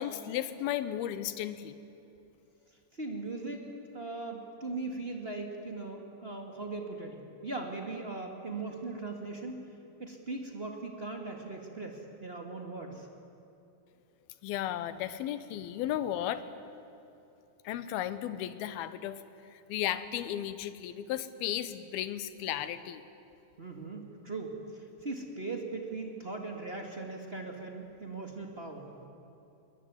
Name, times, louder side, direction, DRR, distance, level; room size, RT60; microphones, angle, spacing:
voice 1, 0.0-1.8 14.4-16.4 17.6-19.2 19.5-23.0, left 11 dB, 75° left, 13 dB, 2.8 m, -34 dB
voice 2, 2.9-3.7 3.9-9.6 10.0-13.1 23.6-29.1, right 3 dB, 30° right, 2 dB, 1.1 m, -39 dB
22.5 x 20.0 x 9.5 m, 3.0 s
omnidirectional pair, 4.5 m